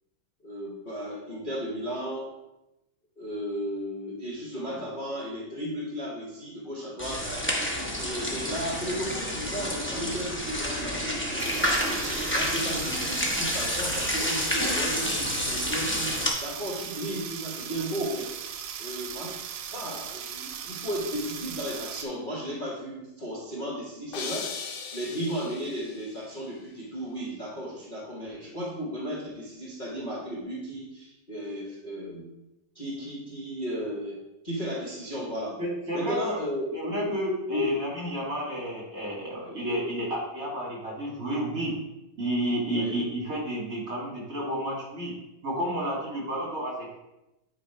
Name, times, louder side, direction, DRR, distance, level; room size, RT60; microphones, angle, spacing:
voice 1, 0.4-2.3 3.2-7.4 8.0-12.0 12.3-16.1 16.4-18.3 18.8-19.3 19.7-24.5 24.9-32.3 32.7-34.2 34.4-35.6 35.9-37.0 37.5-37.6 42.7-43.0, equal, 30° left, -6 dB, 1.1 m, -34 dB
sound 1, 7.0-16.3, equal, 15° left, 0.5 m, -29 dB
sound 2, 11.4-22.1, right 8 dB, 85° right, 0.8 m, -38 dB
sound 3, 24.1-26.2, left 6 dB, 65° left, 1.1 m, -38 dB
voice 2, 35.6-36.4 36.7-41.7 42.2-45.1 45.4-47.0, equal, 40° right, -5 dB, 3.0 m, -31 dB
9.8 x 3.3 x 4.5 m, 0.93 s
omnidirectional pair, 2.3 m